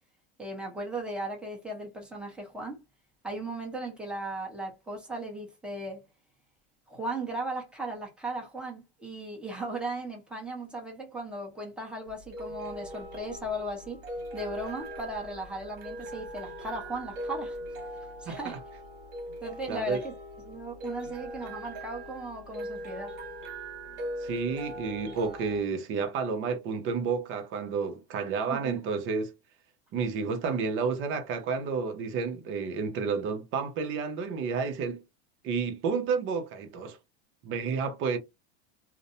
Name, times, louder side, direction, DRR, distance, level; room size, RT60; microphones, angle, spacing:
voice 1, 0.4-2.8 3.2-6.0 6.9-14.0 14.3-17.6 18.2-18.6 19.4-20.1 20.4-23.1 28.5-28.9, right 1 dB, 5° right, 0.8 m, -37 dB
sound 1, 12.1-25.6, right 1 dB, 65° right, 1.2 m, -40 dB
voice 2, 18.3-18.6 19.7-20.0 24.2-29.3 29.9-35.0 35.4-37.0 37.4-38.2, right 5 dB, 35° right, 0.7 m, -31 dB
2.5 x 2.1 x 2.7 m
supercardioid pair, 135°, 34 cm